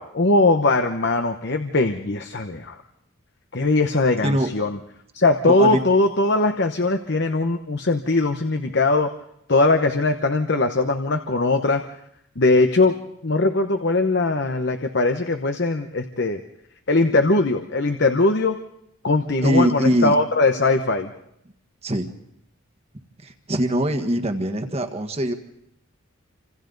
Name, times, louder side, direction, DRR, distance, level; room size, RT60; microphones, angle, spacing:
voice 1, 0.0-2.8 3.5-4.8 5.1-9.1 9.5-11.8 12.4-13.0 13.2-16.4 16.9-18.6 19.0-21.1, left 2 dB, 55° left, 6 dB, 0.9 m, -20 dB
voice 2, 5.4-5.8 19.4-20.1 21.8-22.1 23.2-25.3, equal, 30° right, 6 dB, 1.5 m, -22 dB
28.5 x 26.5 x 4.0 m, 0.76 s
head